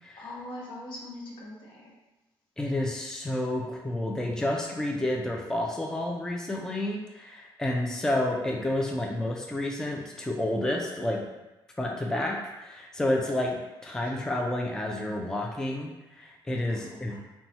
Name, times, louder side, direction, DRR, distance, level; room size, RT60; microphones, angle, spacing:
voice 1, 0.2-2.0 16.8-17.2, left 1 dB, 70° left, -3 dB, 0.8 m, -42 dB
voice 2, 2.6-11.2 11.8-17.2, left 1 dB, 5° left, 0 dB, 0.4 m, -30 dB
3.0 x 2.2 x 2.7 m, 1.0 s
cardioid pair, 100°, 9 cm